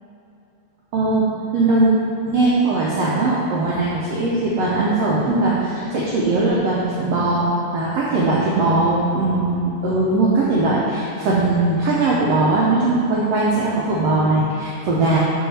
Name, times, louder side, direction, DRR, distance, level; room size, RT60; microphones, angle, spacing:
voice 1, 0.9-1.2 1.5-1.9 2.3-15.2, right 2 dB, 80° right, -6 dB, 1.4 m, -19 dB
5.5 x 5.5 x 4.2 m, 2.8 s
omnidirectional pair, 3.7 m